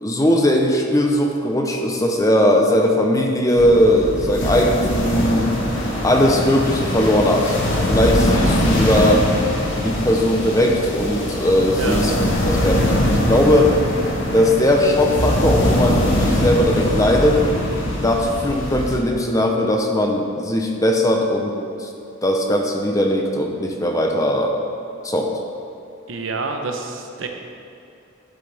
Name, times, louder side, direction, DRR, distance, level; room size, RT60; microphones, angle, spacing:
voice 1, 0.0-5.5 6.0-9.2 9.8-13.7 14.3-17.4 18.0-21.9 22.2-24.5 25.0-25.3, left 1 dB, 15° left, 1 dB, 0.7 m, -19 dB
sound 1, 3.5-19.0, left 1 dB, 70° left, 1.6 m, -22 dB
voice 2, 26.1-27.3, right 3 dB, 80° right, 3 dB, 0.9 m, -27 dB
11.5 x 7.8 x 3.5 m, 2.6 s
head